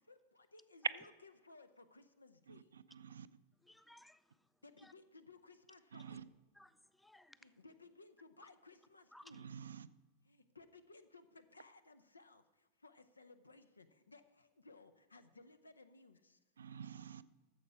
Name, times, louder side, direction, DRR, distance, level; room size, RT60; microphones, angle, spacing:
voice 1, 0.0-2.7 4.6-6.3 7.4-9.5 10.3-12.4 12.8-16.4, left 3 dB, 80° left, 0.6 m, -60 dB
voice 2, 2.5-3.3 5.9-6.2 9.4-9.9 16.6-17.2, right 8 dB, 70° right, 0.4 m, -50 dB
voice 3, 3.5-4.9 6.1-6.2 6.5-7.6 8.4-8.5 9.1-9.5, left 1 dB, 5° left, 0.4 m, -62 dB
13.5 x 7.3 x 4.8 m
figure-of-eight pair, 90°, 0 cm